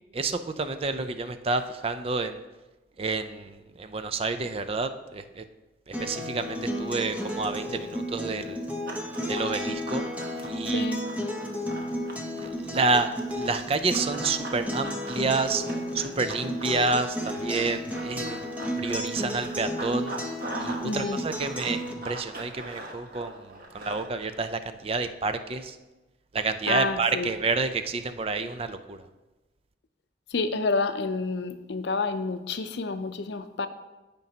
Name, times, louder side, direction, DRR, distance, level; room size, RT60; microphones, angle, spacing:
voice 1, 0.1-2.4 3.0-5.4 5.9-8.6 9.3-10.0 10.4-10.9 12.4-15.6 15.9-18.4 18.8-20.1 20.6-25.8 26.3-29.1, right 3 dB, 30° right, 10 dB, 0.4 m, -29 dB
Acoustic guitar, 5.9-21.9, equal, 10° right, 0.8 m, -33 dB
Run, 8.9-13.2 13.9-20.9 21.1-24.3, right 2 dB, 55° right, 1.1 m, -40 dB
voice 2, 10.7-11.0 20.8-21.2 26.7-27.3 30.3-33.7, left 3 dB, 65° left, 10 dB, 0.5 m, -29 dB
15.0 x 5.3 x 2.8 m, 1.1 s
head